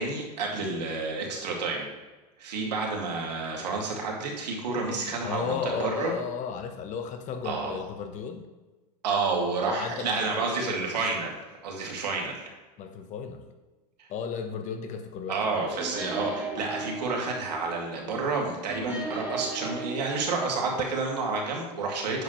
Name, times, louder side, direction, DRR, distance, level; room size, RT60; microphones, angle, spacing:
voice 1, 0.0-1.9 2.4-6.1 7.4-7.8 9.0-11.3 11.6-12.5 14.0-14.1 15.3-22.2, right 3 dB, 90° right, 0 dB, 2.3 m, -30 dB
voice 2, 5.2-8.5 9.7-10.8 12.8-13.4 14.1-16.0, left 6 dB, 35° left, 7 dB, 1.0 m, -35 dB
sound 1, 15.8-18.4 18.7-20.1, right 3 dB, 10° right, 1.8 m, -37 dB
9.3 x 6.6 x 3.1 m, 1.2 s
supercardioid pair, 125°, 21 cm